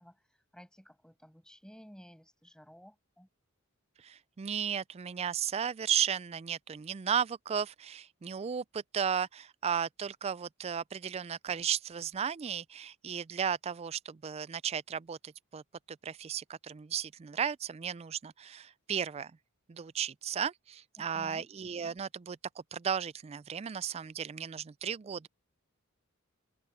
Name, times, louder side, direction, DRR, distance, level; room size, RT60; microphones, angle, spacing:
voice 1, 0.0-3.3 21.0-21.5, equal, 5° left, 6.5 m, -54 dB
voice 2, 4.0-15.6 15.9-19.3 19.7-22.4 22.7-25.3, right 8 dB, 30° right, 0.3 m, -35 dB
open air
head